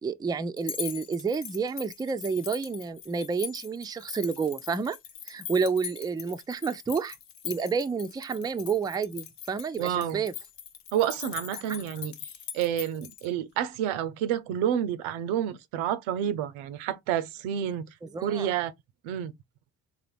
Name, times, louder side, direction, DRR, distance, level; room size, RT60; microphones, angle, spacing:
voice 1, 0.0-5.0 5.3-7.2 7.4-10.3 11.5-11.8 18.0-18.5, right 5 dB, 10° right, 0.3 m, -30 dB
sound 1, 0.6-13.3, left 9 dB, 60° left, 0.9 m, -41 dB
voice 2, 9.8-10.2 10.9-12.1 12.5-17.9 18.2-18.7 19.0-19.3, right 10 dB, 90° right, 0.6 m, -29 dB
3.8 x 2.5 x 3.4 m
supercardioid pair, 45°, 46 cm